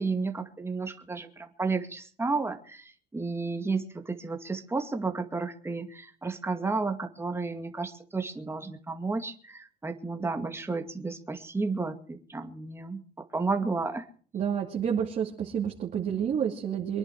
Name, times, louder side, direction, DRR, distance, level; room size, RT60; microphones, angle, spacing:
voice 1, 0.0-14.1, right 3 dB, 15° right, 6 dB, 2.2 m, -32 dB
voice 2, 14.3-17.0, right 8 dB, 50° right, -1 dB, 2.7 m, -29 dB
24.0 x 11.0 x 4.8 m, 0.44 s
cardioid pair, 110°, 17 cm